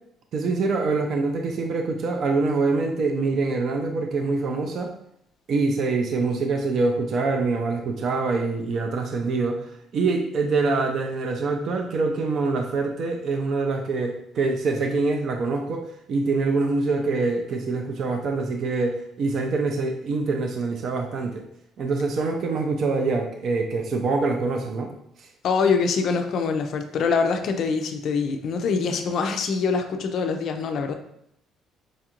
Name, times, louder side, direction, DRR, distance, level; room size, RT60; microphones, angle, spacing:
voice 1, 0.3-4.9 5.5-9.7 9.9-21.4 21.8-24.9 25.2-25.3, right 3 dB, 45° right, 3 dB, 0.4 m, -25 dB
voice 2, 25.4-30.9, left 5 dB, 45° left, 6 dB, 0.4 m, -24 dB
5.1 x 2.4 x 2.8 m, 0.74 s
cardioid pair, 170°, 0 cm